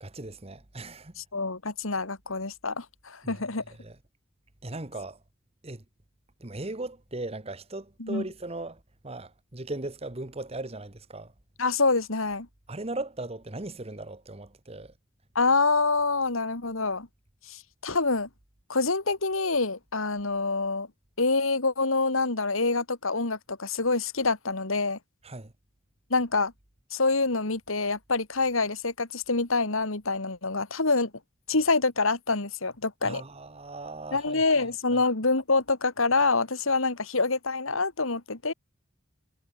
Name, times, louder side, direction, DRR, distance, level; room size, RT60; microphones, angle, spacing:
voice 1, 0.0-1.1 3.2-3.4 3.8-4.0 4.6-5.2 5.6-5.8 6.4-11.3 12.7-14.9 25.2-25.5 33.0-35.0, right 2 dB, 30° right, 1.5 m, -38 dB
voice 2, 1.2-3.6 8.0-8.2 11.6-12.5 15.3-17.1 17.5-18.3 18.7-20.9 21.2-25.0 26.1-26.5 26.9-31.1 31.5-33.2 34.1-38.5, left 3 dB, 80° left, 2.7 m, -26 dB
head